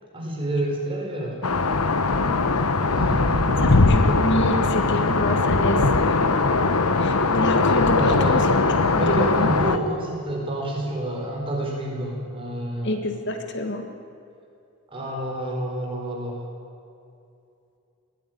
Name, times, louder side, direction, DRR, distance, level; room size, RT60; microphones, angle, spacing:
voice 1, 0.1-1.4 2.9-4.1 7.9-8.4 9.0-13.0 14.9-16.4, right 1 dB, 25° right, -1 dB, 4.8 m, -29 dB
sound 1, 1.4-9.8, left 3 dB, 85° left, 1.2 m, -20 dB
voice 2, 3.4-6.3 7.0-8.5 8.9-9.5 12.8-13.8, left 1 dB, 50° left, 5 dB, 1.8 m, -27 dB
21.0 x 15.0 x 9.4 m, 2.6 s
head